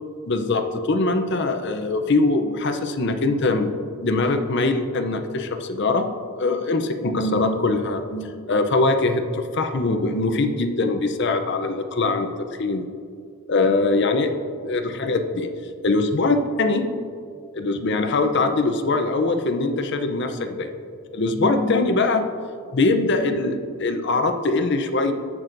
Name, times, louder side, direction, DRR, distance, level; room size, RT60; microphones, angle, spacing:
voice 1, 0.3-3.7 4.0-6.1 6.4-12.3 12.6-12.8 13.5-14.3 14.7-15.5 15.8-16.9 17.5-20.7 21.1-22.2 22.7-25.1, left 3 dB, 50° left, 7 dB, 0.6 m, -22 dB
16.0 x 6.1 x 2.6 m, 2.3 s
head